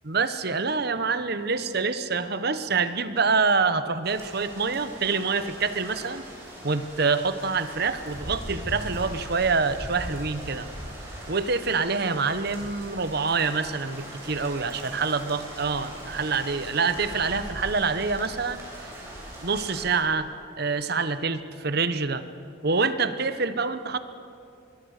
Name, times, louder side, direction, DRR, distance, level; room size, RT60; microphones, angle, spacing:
voice 1, 0.1-6.3 6.6-10.7 11.3-18.7 19.4-20.3 20.6-22.2 22.6-24.0, right 4 dB, 55° right, 11 dB, 1.1 m, -26 dB
sound 1, 4.0-20.0, right 1 dB, 15° right, 6.9 m, -40 dB
24.5 x 21.5 x 6.6 m, 2.5 s
head